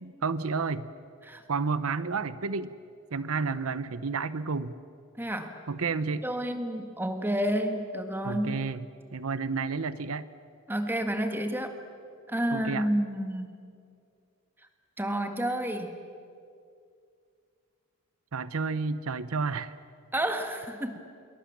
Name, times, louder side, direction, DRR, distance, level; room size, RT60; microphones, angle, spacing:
voice 1, 0.0-0.9 1.5-2.7 3.1-4.7 5.7-6.2 8.2-8.8 9.1-10.3 12.5-12.9 18.3-19.7, right 4 dB, 80° right, 14 dB, 0.8 m, -31 dB
voice 2, 5.2-5.6 6.2-8.6 10.7-11.8 12.3-13.5 15.0-15.9 20.1-21.0, equal, 10° right, 6 dB, 1.7 m, -30 dB
28.0 x 23.0 x 7.4 m, 2.4 s
head